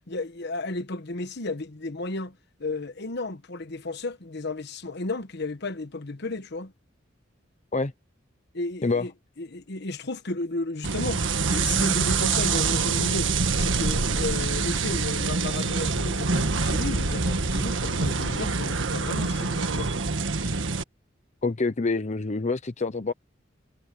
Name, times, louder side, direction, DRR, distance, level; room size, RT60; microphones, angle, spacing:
voice 1, 0.1-6.7 8.5-9.1 9.4-11.2 11.5-19.9, left 2 dB, 60° left, 1.3 m, -33 dB
sound 1, 10.8-20.8, right 4 dB, 80° right, 1.6 m, -25 dB
voice 2, 21.4-23.1, left 3 dB, 40° left, 0.8 m, -26 dB
head